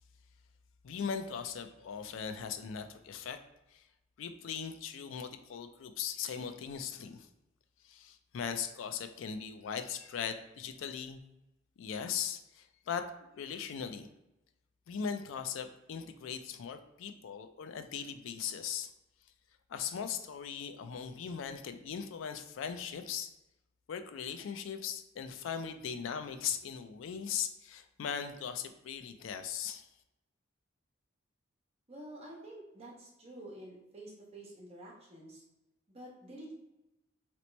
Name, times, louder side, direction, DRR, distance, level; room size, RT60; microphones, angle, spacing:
voice 1, 0.8-3.4 3.7-3.8 4.2-7.3 7.8-11.2 11.8-14.1 14.9-18.9 19.7-23.3 23.9-29.9, left 7 dB, 85° left, 8 dB, 0.4 m, -39 dB
voice 2, 31.9-35.4 35.9-36.5, right 1 dB, 35° right, -4 dB, 0.9 m, -49 dB
3.0 x 2.1 x 3.9 m, 0.94 s
head